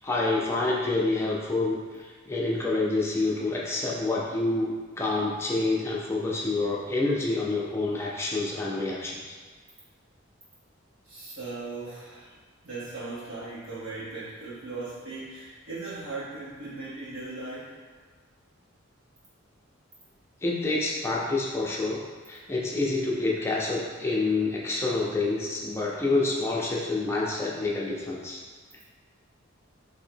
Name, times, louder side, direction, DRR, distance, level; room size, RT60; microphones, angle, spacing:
voice 1, 0.0-9.4 20.4-28.4, left 2 dB, 10° left, -4 dB, 0.6 m, -28 dB
voice 2, 11.0-12.4 12.6-17.7, right 3 dB, 65° right, -9 dB, 1.1 m, -38 dB
3.8 x 2.8 x 4.4 m, 1.5 s
head